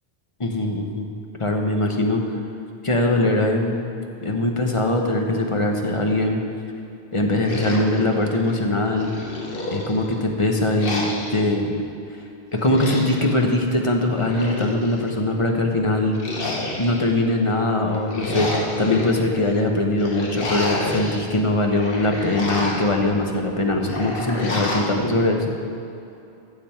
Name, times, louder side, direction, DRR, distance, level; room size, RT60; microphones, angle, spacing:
voice 1, 0.4-1.1 1.4-2.2 2.8-3.9 4.2-6.4 7.1-9.1 9.7-11.0 11.3-11.7 12.5-16.2 16.8-18.5 18.8-25.4, left 1 dB, 30° left, 2 dB, 1.0 m, -21 dB
sound 1, 7.4-8.6 9.0-10.2 10.8-11.5 12.5-13.3 14.1-15.1 16.1-17.1 17.9-19.1 20.0-21.2 21.6-23.0 23.8-25.0, left 2 dB, 60° left, 1.4 m, -29 dB
14.0 x 6.9 x 4.5 m, 2.7 s
omnidirectional pair, 1.1 m